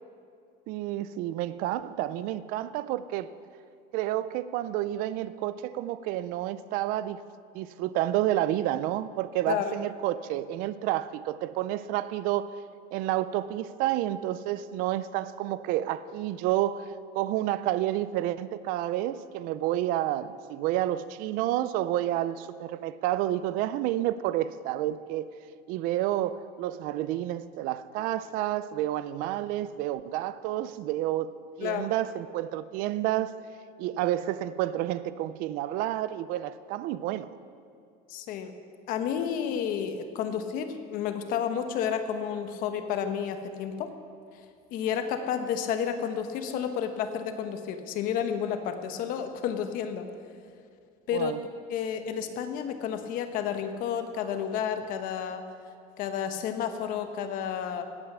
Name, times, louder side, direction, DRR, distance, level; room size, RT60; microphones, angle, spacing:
voice 1, 0.7-3.3 3.9-7.2 7.5-12.5 12.9-25.3 25.7-31.3 31.6-33.3 33.8-37.3 51.1-51.4, right 13 dB, 45° right, 0.4 m, -30 dB
voice 2, 38.1-38.5 38.9-43.9 44.7-50.1 51.1-55.4 56.0-57.8, left 8 dB, 45° left, 1.0 m, -31 dB
16.5 x 9.7 x 6.1 m
cardioid pair, 180°, 20 cm